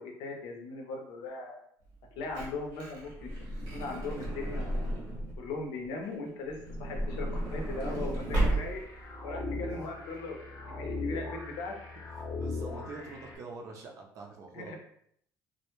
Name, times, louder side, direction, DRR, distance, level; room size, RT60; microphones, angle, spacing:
voice 1, 0.0-1.6 2.2-3.3 3.7-5.0 5.4-8.8 9.2-10.4 10.7-11.9 14.5-14.8, left 3 dB, 85° left, 1 dB, 0.6 m, -39 dB
Truck / Door, 1.9-5.5 6.5-9.0 9.7-9.8 10.0-10.2, right 1 dB, 90° right, 0.9 m, -33 dB
voice 2, 8.2-8.7 12.1-14.8, right 4 dB, 45° right, 0 dB, 0.5 m, -45 dB
sound 1, 8.3-13.3, left 3 dB, 30° left, 0.6 m, -39 dB
2.1 x 2.1 x 2.9 m, 0.68 s
cardioid pair, 160°, 7 cm